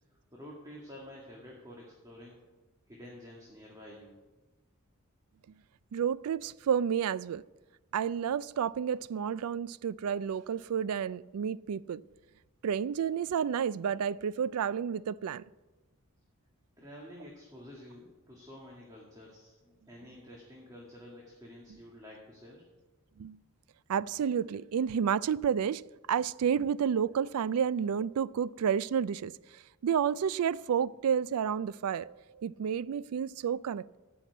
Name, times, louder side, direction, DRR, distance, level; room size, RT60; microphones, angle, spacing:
voice 1, 0.3-2.4 2.9-4.1 16.8-22.6, left 1 dB, 15° right, 1.9 m, -50 dB
voice 2, 5.9-7.4 7.9-12.0 12.6-15.4 23.2-23.4 23.9-25.8 26.1-29.3 29.8-34.0, right 8 dB, 90° right, 0.4 m, -30 dB
13.0 x 5.9 x 8.4 m
head